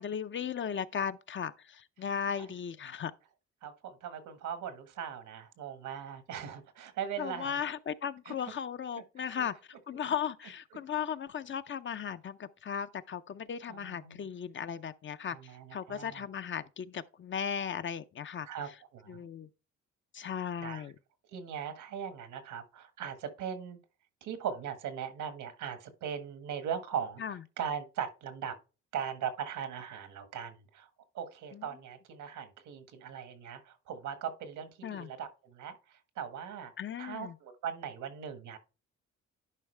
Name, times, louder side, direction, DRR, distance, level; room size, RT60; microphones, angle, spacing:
voice 1, 0.0-3.1 7.2-15.4 15.7-18.5 19.1-19.5 20.1-20.9 27.2-27.4 31.5-31.7 34.8-35.1 36.8-37.4, left 7 dB, 40° left, 0.6 m, -36 dB
voice 2, 3.6-7.6 8.3-8.4 9.2-9.5 13.7-14.3 15.3-16.2 18.4-19.2 20.6-20.8 21.3-23.8 24.2-28.6 28.9-30.9 31.1-36.7 37.0-38.6, right 8 dB, 80° right, 1.6 m, -39 dB
11.0 x 4.7 x 3.3 m
cardioid pair, 90°, 30 cm